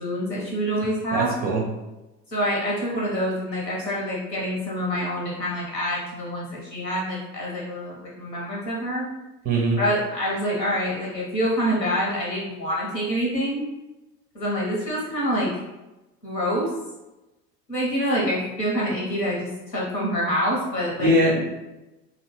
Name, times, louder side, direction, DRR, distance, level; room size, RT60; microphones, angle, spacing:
voice 1, 0.0-1.3 2.3-9.1 9.8-13.6 14.3-15.5 16.2-16.7 17.7-21.1, equal, 85° left, -5 dB, 1.1 m, -26 dB
voice 2, 1.1-1.6 9.4-9.8 21.0-21.4, right 1 dB, 20° right, -1 dB, 0.4 m, -21 dB
2.7 x 2.3 x 3.1 m, 1.0 s
figure-of-eight pair, 80°, 49 cm